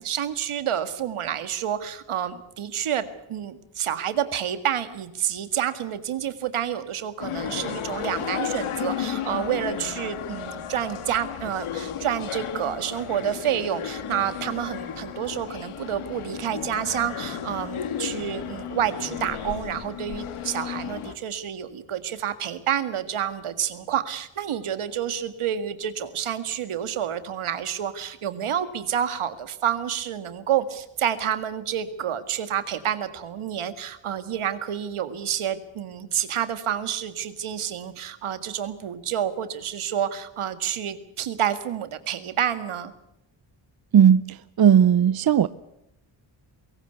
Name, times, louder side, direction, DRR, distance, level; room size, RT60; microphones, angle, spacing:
voice 1, 0.0-42.9, right 9 dB, 80° right, 11 dB, 1.9 m, -29 dB
sound 1, 7.2-21.1, left 9 dB, 80° left, 1.7 m, -33 dB
voice 2, 43.9-45.5, right 9 dB, 45° right, 17 dB, 0.7 m, -17 dB
22.5 x 17.5 x 8.2 m, 0.86 s
cardioid pair, 70°, 50 cm